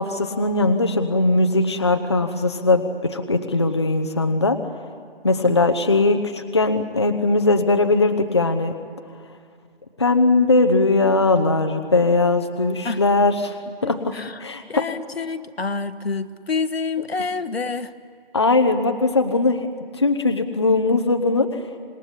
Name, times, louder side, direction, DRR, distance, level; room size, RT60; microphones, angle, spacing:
voice 1, 0.0-4.6 5.2-8.7 10.0-13.6 13.8-13.9 14.4-14.6 18.3-19.7 19.9-21.5, left 3 dB, 25° left, 6 dB, 0.8 m, -19 dB
voice 2, 13.8-14.4 14.7-17.9, left 4 dB, 80° left, 10 dB, 1.4 m, -28 dB
26.5 x 20.0 x 9.9 m, 2.2 s
figure-of-eight pair, 175°, 30 cm